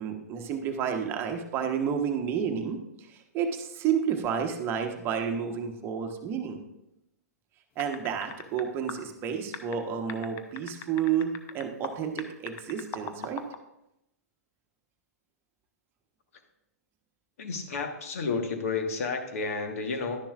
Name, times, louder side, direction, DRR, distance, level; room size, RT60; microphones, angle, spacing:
voice 1, 0.0-2.8 3.1-6.6 7.8-13.4, right 7 dB, 25° right, 4 dB, 1.1 m, -30 dB
sound 1, 7.8-8.6 8.9-9.0 9.5-11.9 12.2-13.6, left 9 dB, 25° left, 0.7 m, -39 dB
voice 2, 17.4-20.2, left 4 dB, 60° left, 5 dB, 1.5 m, -31 dB
11.5 x 10.5 x 2.5 m, 0.86 s
figure-of-eight pair, 115°, 9 cm